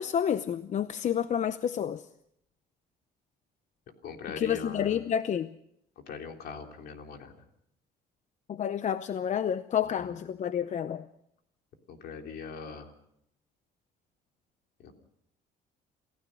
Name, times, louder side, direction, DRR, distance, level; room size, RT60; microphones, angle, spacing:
voice 1, 0.0-2.0 4.4-5.5 8.5-11.1, left 9 dB, 45° left, 13 dB, 0.7 m, -29 dB
voice 2, 4.0-5.0 6.1-7.3 11.9-12.9 14.8-14.9, left 5 dB, 70° left, 3 dB, 3.4 m, -41 dB
27.5 x 15.5 x 6.3 m, 0.76 s
cardioid pair, 110°, 17 cm